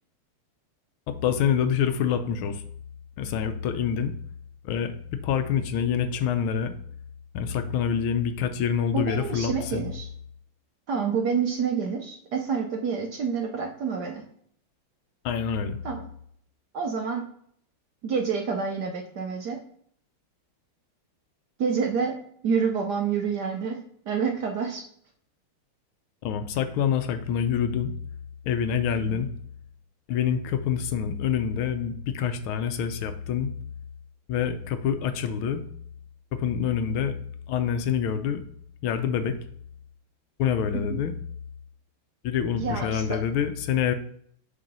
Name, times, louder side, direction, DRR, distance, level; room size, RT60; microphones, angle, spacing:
voice 1, 1.2-2.6 3.2-4.1 4.6-6.7 7.3-9.9 15.2-15.8 26.2-27.9 28.5-29.3 30.1-33.5 34.3-35.6 36.3-37.2 37.5-38.4 38.8-39.4 40.4-41.1 42.2-43.9, left 8 dB, 80° left, 9 dB, 1.4 m, -26 dB
voice 2, 8.9-10.1 10.9-14.2 15.8-16.1 16.7-17.2 18.0-19.6 21.6-22.2 22.4-23.8 24.1-24.8 29.0-29.3 40.7-41.0 42.5-43.2, right 6 dB, 65° right, 3 dB, 1.1 m, -28 dB
6.7 x 3.1 x 5.3 m, 0.64 s
omnidirectional pair, 2.4 m